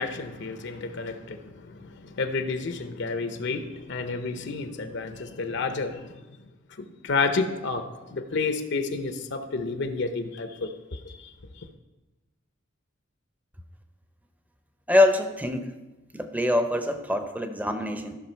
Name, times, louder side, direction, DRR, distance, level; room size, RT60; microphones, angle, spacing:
voice 1, 0.0-6.5 6.8-11.2 11.6-11.7, left 4 dB, 60° left, 8 dB, 0.7 m, -30 dB
voice 2, 14.9-15.8 16.1-18.2, left 2 dB, 10° right, 7 dB, 0.7 m, -24 dB
14.0 x 5.8 x 4.4 m, 1.1 s
head